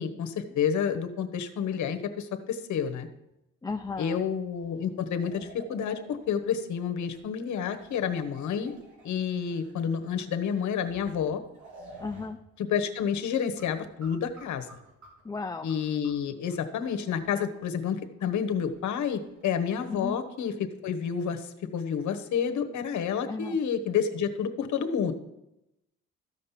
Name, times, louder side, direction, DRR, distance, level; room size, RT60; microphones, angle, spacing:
voice 1, 0.0-3.1 4.0-8.7 9.0-11.4 12.7-14.7 15.6-20.5 20.8-25.1, left 7 dB, 70° left, 7 dB, 1.1 m, -29 dB
voice 2, 3.6-4.3 12.0-12.4 15.2-15.7 19.9-20.2 23.2-23.6, left 4 dB, 10° left, 7 dB, 0.5 m, -35 dB
sound 1, 3.7-6.8 7.1-7.2 7.6-12.3 12.6-12.7 13.0-19.5, right 2 dB, 75° right, 3.5 m, -52 dB
13.5 x 5.3 x 5.8 m, 0.88 s
cardioid pair, 90°, 30 cm